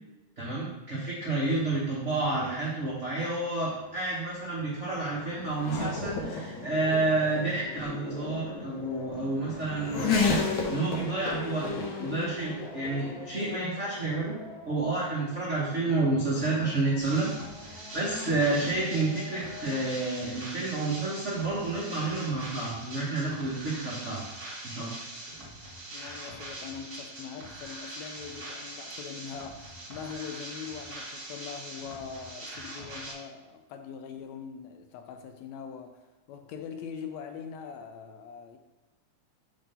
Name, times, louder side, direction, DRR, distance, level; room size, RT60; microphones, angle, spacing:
voice 1, 0.4-14.4 14.6-17.3 17.9-24.2 24.6-24.9, right 2 dB, 80° right, 0.6 m, -30 dB
Race car auto racing / Accelerating revving vroom, 3.7-19.9, left 4 dB, 60° left, 1.4 m, -35 dB
sound 1, 17.0-33.1, right 1 dB, 40° right, 1.4 m, -42 dB
voice 2, 25.9-36.0 36.3-38.6, left 7 dB, 80° left, 1.7 m, -42 dB
6.3 x 3.6 x 5.5 m
omnidirectional pair, 3.4 m